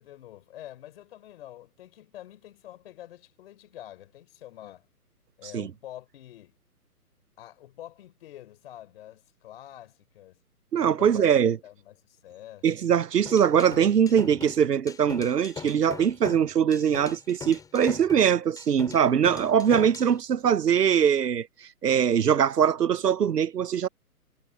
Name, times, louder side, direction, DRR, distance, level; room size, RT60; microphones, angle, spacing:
voice 1, 0.0-4.9 5.4-6.6 7.4-10.4 11.0-11.3 11.6-12.7, left 13 dB, 40° left, 4.3 m, -46 dB
voice 2, 10.7-11.6 12.6-21.5 21.8-23.9, right 8 dB, 85° right, 0.9 m, -22 dB
sound 1, 13.3-20.1, left 6 dB, 10° left, 3.2 m, -41 dB
hypercardioid pair, 145°, 46 cm